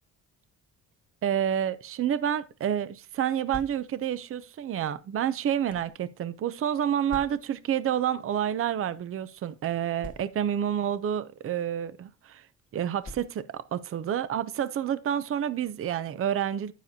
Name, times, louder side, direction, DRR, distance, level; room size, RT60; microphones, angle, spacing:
voice 1, 1.2-12.4 12.7-16.7, right 9 dB, 45° right, 0.6 m, -29 dB
sound 1, 3.3-4.2 5.0-6.0 7.1-7.7 8.6-8.7 9.0-9.1 10.0-10.7 11.5-11.8 13.0-13.7, left 1 dB, 25° left, 1.0 m, -45 dB
9.4 x 7.5 x 2.8 m
cardioid pair, 90°, 30 cm